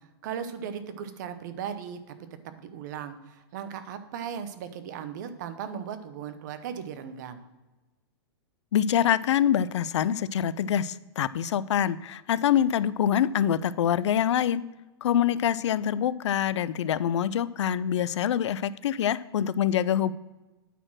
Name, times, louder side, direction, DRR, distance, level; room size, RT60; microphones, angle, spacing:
voice 1, 0.2-2.1 2.5-7.4, right 8 dB, 40° right, 11 dB, 0.7 m, -37 dB
voice 2, 8.7-14.6 15.0-20.1, left 9 dB, 85° left, 18 dB, 0.4 m, -25 dB
9.0 x 4.4 x 6.1 m, 1.1 s
hypercardioid pair, 165°, 14 cm